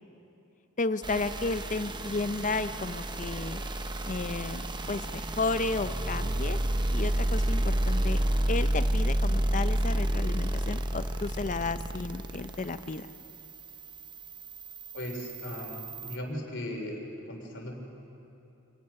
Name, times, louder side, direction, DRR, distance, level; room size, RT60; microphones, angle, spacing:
voice 1, 0.8-3.6 4.0-6.6 6.9-8.2 8.5-13.1, left 3 dB, 35° left, 12 dB, 0.6 m, -33 dB
sound 1, 1.0-16.2, right 1 dB, 20° right, 0.8 m, -31 dB
voice 2, 14.9-17.7, left 1 dB, 55° left, 1 dB, 3.5 m, -38 dB
26.0 x 18.5 x 5.7 m, 2.9 s
head